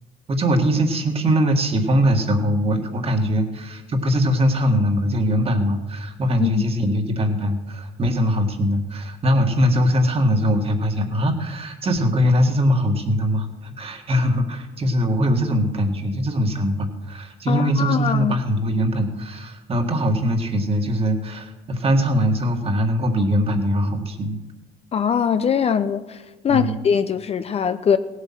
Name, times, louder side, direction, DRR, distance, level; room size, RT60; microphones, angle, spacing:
voice 1, 0.3-24.4 26.5-26.8, equal, 35° right, 1.9 m, -21 dB
voice 2, 17.5-18.3 24.9-28.0, left 7 dB, 35° left, 0.6 m, -21 dB
17.0 x 8.1 x 6.0 m
cardioid pair, 110°, 17 cm